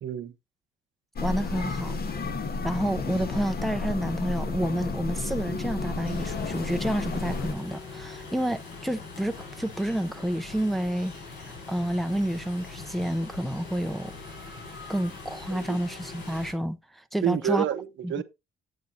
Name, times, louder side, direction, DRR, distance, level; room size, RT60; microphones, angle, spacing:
voice 1, 0.0-0.3 15.5-15.8 17.2-18.2, right 9 dB, 70° right, 0.8 m, -28 dB
sound 1, 1.2-7.5, left 4 dB, 50° left, 1.3 m, -31 dB
voice 2, 1.2-1.9 2.6-11.1 11.4-14.1 14.9-17.6 18.0-18.2, right 1 dB, ahead, 0.6 m, -29 dB
sound 2, 6.0-16.5, left 4 dB, 75° left, 4.4 m, -42 dB
9.3 x 7.8 x 2.7 m
cardioid pair, 90°, 20 cm